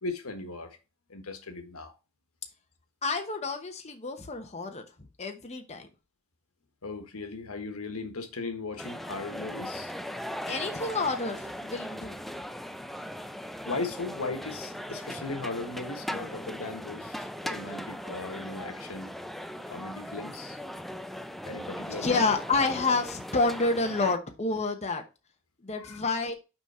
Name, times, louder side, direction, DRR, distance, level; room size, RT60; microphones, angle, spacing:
voice 1, 0.0-0.8 1.1-1.9 6.8-9.9 13.6-19.1 19.7-20.6 21.4-22.2 25.8-26.0, left 3 dB, 85° left, 1.4 m, -37 dB
voice 2, 3.0-4.8 5.2-5.9 10.5-12.2 22.0-25.0 25.6-26.3, left 3 dB, 30° left, 1.0 m, -29 dB
sound 1, 8.8-24.2, equal, ahead, 0.4 m, -39 dB
6.1 x 5.1 x 4.3 m
head